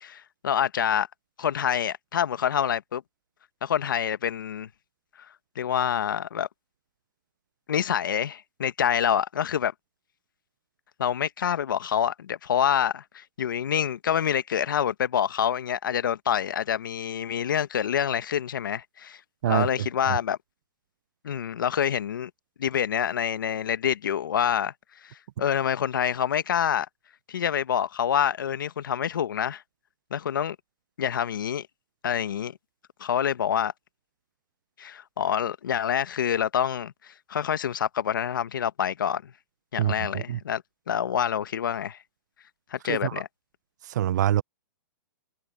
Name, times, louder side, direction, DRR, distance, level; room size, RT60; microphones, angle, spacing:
voice 1, 0.0-1.1 1.4-3.0 3.6-4.7 5.5-6.5 7.7-9.7 11.0-19.2 19.5-20.4 21.2-22.3 22.6-24.7 25.0-26.9 27.3-29.6 30.1-30.6 31.0-31.7 32.0-32.6 33.0-33.7 34.8-39.3 39.7-40.6 40.9-42.0 42.7-43.3, left 9 dB, 80° left, 1.3 m, -27 dB
voice 2, 19.4-20.2 39.8-40.4 42.9-43.2 43.9-44.4, right 11 dB, 60° right, 0.6 m, -26 dB
hypercardioid pair, 145°, 11 cm